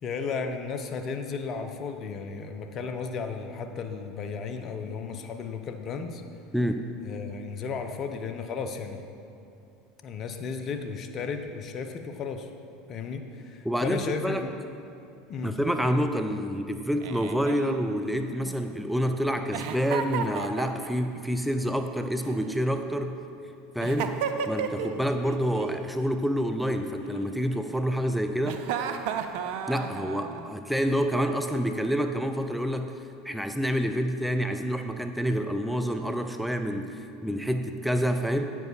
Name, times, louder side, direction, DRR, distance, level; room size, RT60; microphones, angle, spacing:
voice 1, 0.0-6.2 7.0-9.0 10.0-12.5 12.9-14.5 15.3-15.6 15.8-15.9, left 5 dB, 45° left, 6 dB, 0.7 m, -34 dB
voice 2, 13.6-14.4 15.4-23.2 23.7-24.2 24.5-28.6 29.7-32.9 33.2-38.5, equal, ahead, 6 dB, 0.5 m, -28 dB
Giggle, 17.0-18.8 19.5-21.1 22.2-23.1 23.8-25.0 25.3-25.8 27.0-27.8 28.4-30.5, right 7 dB, 65° right, 0.5 m, -34 dB
9.0 x 7.3 x 4.0 m, 2.7 s
hypercardioid pair, 80°, 0 cm